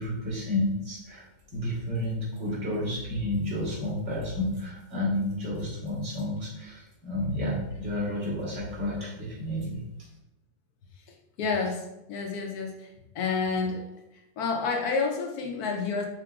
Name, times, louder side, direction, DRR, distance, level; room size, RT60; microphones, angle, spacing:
voice 1, 0.0-10.1, left 1 dB, 40° right, -7 dB, 1.8 m, -31 dB
voice 2, 11.4-11.8 12.1-12.9 13.1-13.8 14.4-16.1, left 4 dB, 70° left, 2 dB, 1.0 m, -29 dB
4.7 x 3.8 x 2.4 m, 0.88 s
omnidirectional pair, 1.9 m